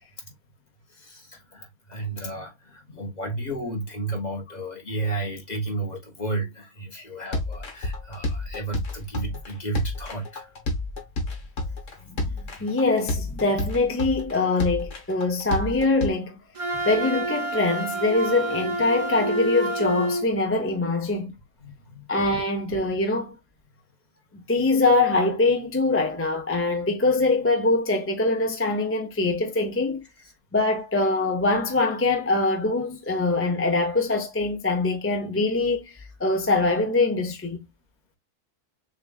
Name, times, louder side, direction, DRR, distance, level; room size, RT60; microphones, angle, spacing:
voice 1, 0.9-10.5 12.2-12.5 21.6-22.1, right 2 dB, 35° left, 1.4 m, -33 dB
sound 1, 7.3-16.1, left 2 dB, 70° left, 1.8 m, -30 dB
voice 2, 12.6-16.4 16.8-21.3 22.1-23.4 24.3-30.0 30.5-37.6, left 2 dB, 15° left, 0.4 m, -23 dB
Wind instrument woodwind instrument, 16.5-20.3, right 1 dB, 30° right, 0.8 m, -28 dB
6.5 x 2.5 x 2.3 m
omnidirectional pair, 1.4 m